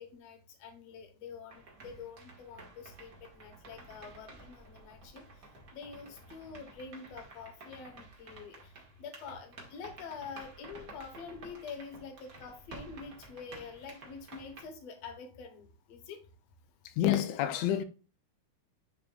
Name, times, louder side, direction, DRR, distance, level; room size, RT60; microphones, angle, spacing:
voice 1, 0.0-5.2 5.7-8.7 9.0-16.2, left 5 dB, 65° left, 1.9 m, -46 dB
sound 1, 1.5-14.6, right 3 dB, 40° right, 1.3 m, -52 dB
voice 2, 17.0-17.8, left 11 dB, 90° left, 1.5 m, -28 dB
10.5 x 4.7 x 2.3 m
omnidirectional pair, 3.8 m